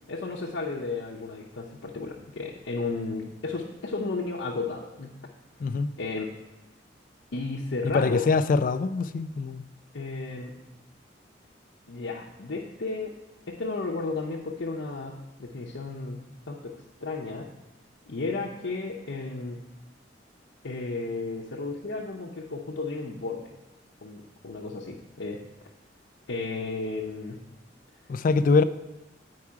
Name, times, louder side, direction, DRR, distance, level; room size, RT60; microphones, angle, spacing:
voice 1, 0.1-5.1 6.0-6.3 7.3-8.3 9.9-10.6 11.9-13.1 13.5-16.8 17.0-17.5 18.1-19.6 20.6-23.5 24.0-25.4 26.3-27.4, left 3 dB, 80° left, 0.7 m, -33 dB
voice 2, 7.9-9.6 28.1-28.6, left 4 dB, 45° left, 0.3 m, -23 dB
8.6 x 4.7 x 4.7 m
head